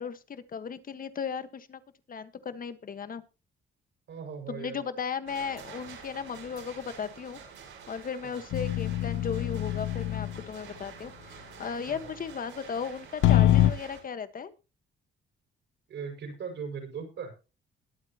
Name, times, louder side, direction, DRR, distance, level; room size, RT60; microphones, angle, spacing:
voice 1, 0.0-1.8 2.1-3.2 4.5-7.4 7.9-14.5, left 6 dB, 45° left, 11 dB, 1.5 m, -36 dB
voice 2, 4.1-4.8 8.2-8.4 11.9-12.1 15.9-17.3, right 6 dB, 65° right, 3 dB, 6.3 m, -39 dB
sound 1, 5.3-14.0, right 6 dB, 80° right, 7.8 m, -48 dB
sound 2, 8.5-10.4 13.2-13.7, left 13 dB, 90° left, 0.9 m, -24 dB
22.0 x 8.4 x 3.0 m, 0.32 s
cardioid pair, 90°, 20 cm